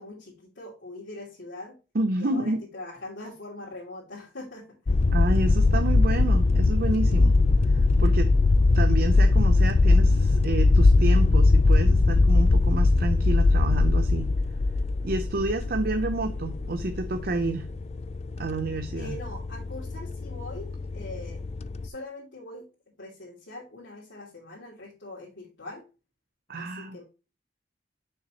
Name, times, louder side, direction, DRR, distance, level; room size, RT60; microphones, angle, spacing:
voice 1, 0.0-1.8 2.2-5.0 18.9-21.5 21.8-22.7 23.0-25.8 26.5-27.0, left 2 dB, 75° left, -6 dB, 2.6 m, -42 dB
voice 2, 1.9-2.6 5.1-7.4 7.7-8.3 8.7-14.3 15.0-17.7 18.4-19.2 26.5-27.0, right 2 dB, 55° right, 8 dB, 0.7 m, -29 dB
sound 1, 4.9-21.9, left 3 dB, 35° left, 0.4 m, -21 dB
6.8 x 5.9 x 2.9 m, 0.32 s
head